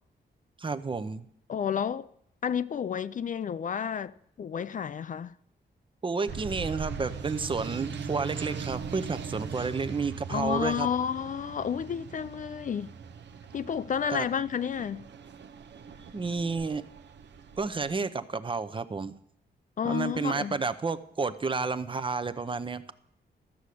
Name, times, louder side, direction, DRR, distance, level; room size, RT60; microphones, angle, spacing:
voice 1, 0.6-1.3 6.0-10.9 14.1-14.3 16.1-16.8 17.6-19.1 19.8-22.9, right 4 dB, 30° right, 0.7 m, -31 dB
voice 2, 1.5-2.1 2.4-5.3 10.3-12.9 13.5-15.0 19.8-20.6, left 8 dB, 45° left, 0.4 m, -31 dB
sound 1, 6.3-18.0, right 6 dB, 80° right, 0.9 m, -40 dB
13.5 x 6.4 x 8.3 m
wide cardioid pair, 120°, 18 cm